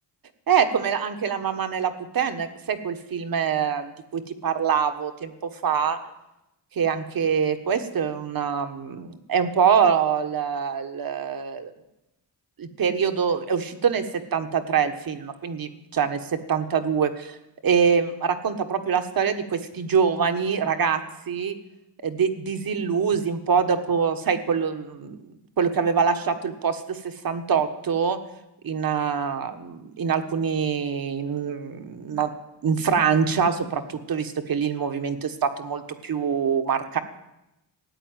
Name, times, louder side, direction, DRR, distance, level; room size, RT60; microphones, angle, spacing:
voice 1, 0.5-5.3 5.6-6.0 6.7-11.7 12.6-17.4 17.6-21.5 22.0-25.3 25.6-28.2 28.6-32.3 32.6-37.0, right 6 dB, 50° right, 8 dB, 1.5 m, -24 dB
14.5 x 8.6 x 9.2 m, 0.92 s
cardioid pair, 75°, 44 cm